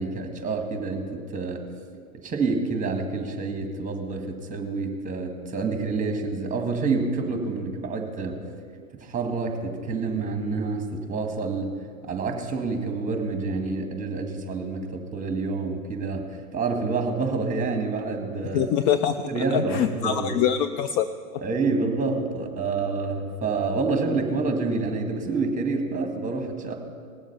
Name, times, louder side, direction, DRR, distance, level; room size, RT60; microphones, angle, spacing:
voice 1, 0.0-1.6 2.1-8.4 8.9-11.7 12.1-18.7 19.3-20.4 21.4-26.7, right 4 dB, 20° right, 4 dB, 1.9 m, -28 dB
voice 2, 18.5-21.1, left 9 dB, 35° left, 11 dB, 0.4 m, -24 dB
19.0 x 7.3 x 5.6 m, 2.1 s
hypercardioid pair, 105°, 43 cm